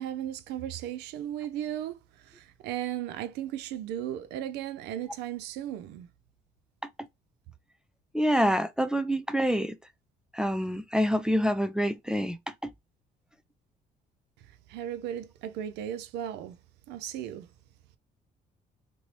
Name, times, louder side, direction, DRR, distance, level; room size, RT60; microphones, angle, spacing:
voice 1, 0.0-6.1 14.7-16.6 16.9-17.5, right 11 dB, 85° right, 0.5 m, -36 dB
voice 2, 8.1-9.8 10.3-12.4, equal, 5° right, 0.3 m, -26 dB
3.1 x 2.7 x 2.9 m
cardioid pair, 110°, 17 cm